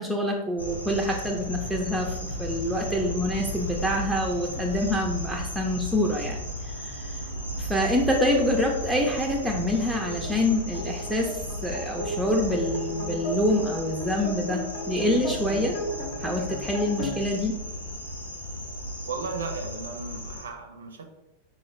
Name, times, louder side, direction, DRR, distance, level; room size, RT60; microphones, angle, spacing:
voice 1, 0.0-6.4 6.6-7.2 7.6-15.7 16.2-17.5, left 1 dB, 5° right, -1 dB, 0.4 m, -26 dB
sound 1, 0.6-20.4, equal, 90° left, 0.6 m, -35 dB
sound 2, 8.7-17.2, equal, 55° left, 0.7 m, -36 dB
voice 2, 19.1-21.1, right 4 dB, 70° right, 5 dB, 0.5 m, -35 dB
3.9 x 2.3 x 3.0 m, 0.97 s
figure-of-eight pair, 90°, 0 cm